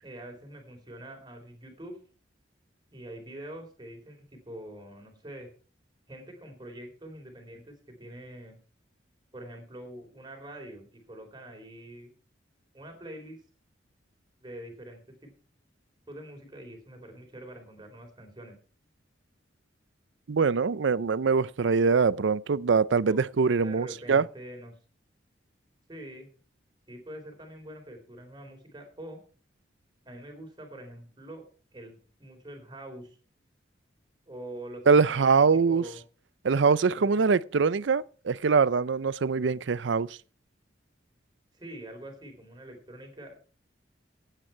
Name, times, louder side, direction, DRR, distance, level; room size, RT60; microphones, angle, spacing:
voice 1, 0.0-2.0 2.9-5.5 6.1-8.6 9.3-12.1 12.7-13.4 14.4-15.3 16.1-18.5 23.1-23.2 23.6-24.7 25.9-26.3 26.9-29.2 30.0-31.4 31.7-33.2 34.3-34.8 35.1-36.0 37.0-37.1 41.5-43.4, right 1 dB, 25° right, 3.7 m, -45 dB
voice 2, 20.3-24.3 34.9-35.8 36.4-40.2, right 5 dB, 85° right, 0.5 m, -23 dB
15.0 x 9.1 x 4.5 m
head